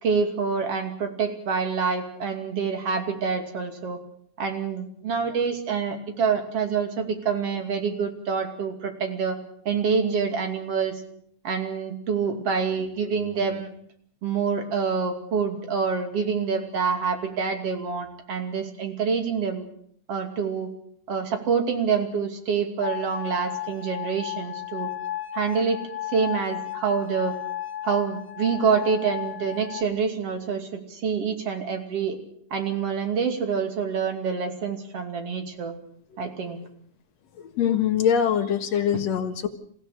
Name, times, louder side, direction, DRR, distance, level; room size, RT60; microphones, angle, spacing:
voice 1, 0.0-4.0 4.4-9.4 9.6-11.0 11.4-13.7 14.2-19.7 20.1-20.7 21.1-24.9 25.3-25.8 26.1-27.3 27.8-32.2 32.5-35.7 36.2-36.6, right 5 dB, 50° right, 5 dB, 3.5 m, -26 dB
sound 1, 22.8-29.8, left 13 dB, 85° left, 0.7 m, -34 dB
voice 2, 37.3-39.5, left 8 dB, 65° left, 6 dB, 2.7 m, -23 dB
29.5 x 15.5 x 6.7 m, 0.64 s
omnidirectional pair, 3.4 m